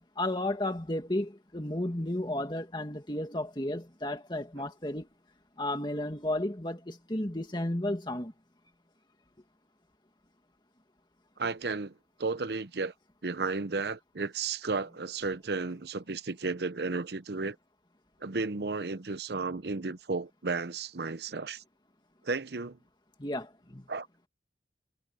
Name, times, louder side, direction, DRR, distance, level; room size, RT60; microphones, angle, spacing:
voice 1, 0.2-5.1 5.6-8.3 23.2-23.8, left 1 dB, 25° left, 2.3 m, -33 dB
voice 2, 11.4-11.9 12.2-12.9 13.2-17.6 18.2-21.6 22.2-22.8 23.9-24.1, right 4 dB, 70° right, 0.8 m, -33 dB
head